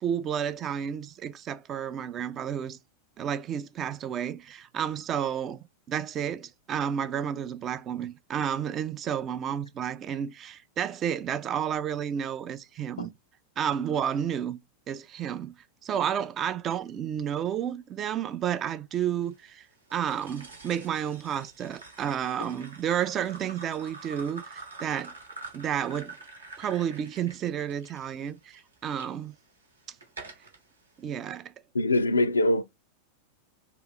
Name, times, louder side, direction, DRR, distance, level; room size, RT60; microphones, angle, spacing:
voice 1, 0.0-2.8 3.2-13.1 13.6-14.6 14.9-15.5 15.8-19.7 19.9-25.1 25.5-26.2 26.6-29.4 31.0-31.5, right 9 dB, 30° right, 0.3 m, -31 dB
sound 1, 19.9-29.1 29.6-30.6, right 3 dB, 75° right, 0.9 m, -46 dB
voice 2, 31.7-32.6, left 1 dB, 75° left, 0.3 m, -23 dB
2.9 x 2.4 x 3.8 m
figure-of-eight pair, 90°, 0 cm